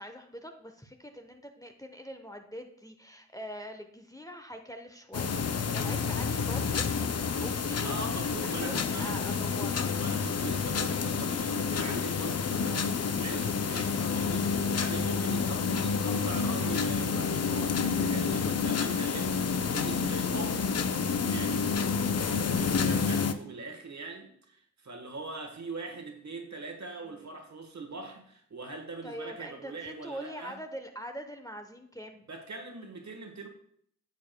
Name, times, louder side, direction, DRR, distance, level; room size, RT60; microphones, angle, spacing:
voice 1, 0.0-6.8 7.4-9.9 15.4-15.6 27.0-27.2 29.0-32.3, equal, 10° left, 5 dB, 0.8 m, -43 dB
sound 1, 5.1-23.3, left 5 dB, 55° left, 0.5 m, -29 dB
voice 2, 7.8-9.2 9.9-20.8 21.2-21.7 22.2-30.6 32.3-33.5, right 3 dB, 65° right, 4 dB, 1.3 m, -42 dB
9.2 x 7.2 x 2.2 m, 0.65 s
cardioid pair, 45°, 30 cm